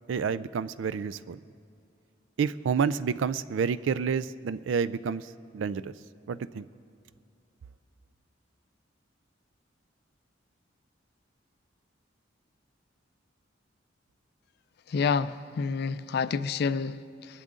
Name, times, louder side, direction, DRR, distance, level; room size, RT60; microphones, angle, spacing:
voice 1, 0.1-1.4 2.4-5.3 5.5-5.9 6.3-6.6, right 6 dB, 80° right, 0.4 m, -29 dB
voice 2, 14.9-17.4, left 5 dB, 55° left, 0.4 m, -29 dB
22.5 x 12.0 x 3.7 m
head